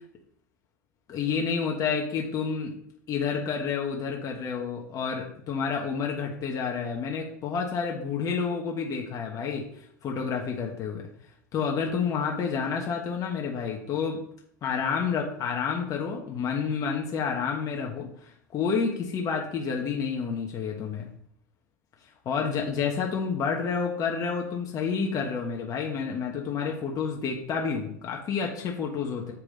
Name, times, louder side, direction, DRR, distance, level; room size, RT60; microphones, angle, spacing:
voice 1, 1.1-2.7 3.1-11.0 11.5-14.2 14.6-21.1 22.2-29.3, left 6 dB, 35° left, 0 dB, 1.2 m, -29 dB
7.2 x 4.7 x 3.8 m, 0.71 s
hypercardioid pair, 105°, 10 cm